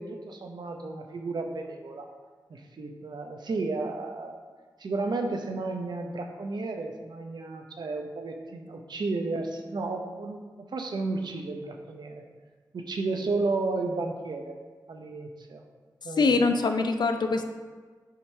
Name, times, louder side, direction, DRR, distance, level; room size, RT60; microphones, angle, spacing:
voice 1, 0.0-2.1 2.5-4.4 4.8-12.2 12.7-14.6 14.9-15.6 16.0-16.5, right 3 dB, 70° right, 4 dB, 0.7 m, -33 dB
voice 2, 16.2-17.4, left 3 dB, 70° left, 6 dB, 0.6 m, -23 dB
7.4 x 3.0 x 5.5 m, 1.5 s
cardioid pair, 60°, 8 cm